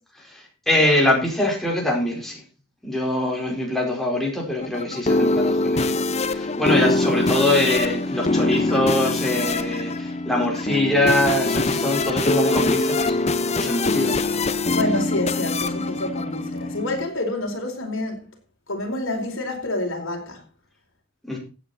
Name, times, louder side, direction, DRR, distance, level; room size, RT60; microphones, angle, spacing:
voice 1, 0.2-2.4 2.8-5.9 6.3-13.1 13.5-14.1 21.3-21.4, left 1 dB, ahead, 4.9 m, -23 dB
sound 1, 4.6-17.1, left 2 dB, 30° left, 0.8 m, -23 dB
voice 2, 14.7-18.3 18.7-20.4, left 1 dB, 60° left, 4.6 m, -28 dB
15.5 x 9.0 x 4.3 m
head